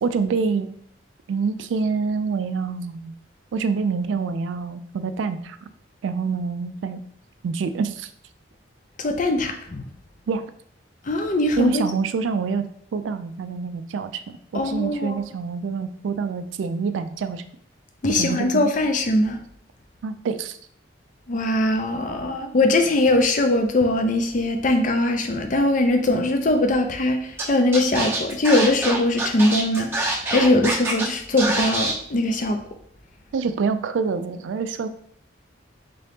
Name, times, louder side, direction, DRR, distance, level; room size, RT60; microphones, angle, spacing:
voice 1, 0.0-0.7 1.3-3.2 3.5-5.6 6.0-7.0 7.4-8.1 10.3-10.5 11.6-14.2 14.5-17.4 18.1-18.7 20.0-20.6 33.3-34.9, right 5 dB, 75° right, 11 dB, 0.3 m, -26 dB
voice 2, 9.0-9.8 11.1-11.8 14.5-15.2 18.0-19.4 21.3-32.6, left 2 dB, 40° left, 6 dB, 0.4 m, -21 dB
Scratching (performance technique), 27.4-27.5 27.7-31.0 31.4-31.9, right 2 dB, 10° right, 0.7 m, -25 dB
3.7 x 2.8 x 3.4 m, 0.64 s
head